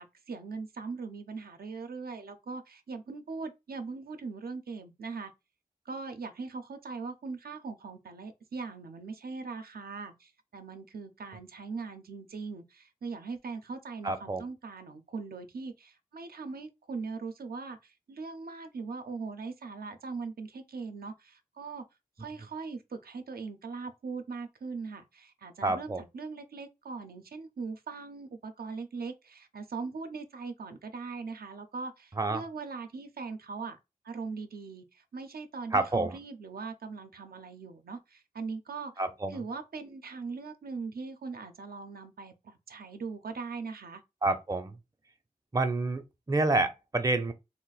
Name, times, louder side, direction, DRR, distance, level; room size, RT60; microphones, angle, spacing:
voice 1, 0.0-5.3 5.9-21.8 22.2-33.8 34.0-38.9 39.3-44.0, right 4 dB, 85° right, 0.4 m, -40 dB
voice 2, 14.0-14.4 25.6-26.0 32.2-32.4 35.7-36.2 39.0-39.4 44.2-44.8 45.5-47.3, right 2 dB, 25° right, 0.4 m, -28 dB
2.4 x 2.1 x 3.9 m
wide cardioid pair, 70°, 15 cm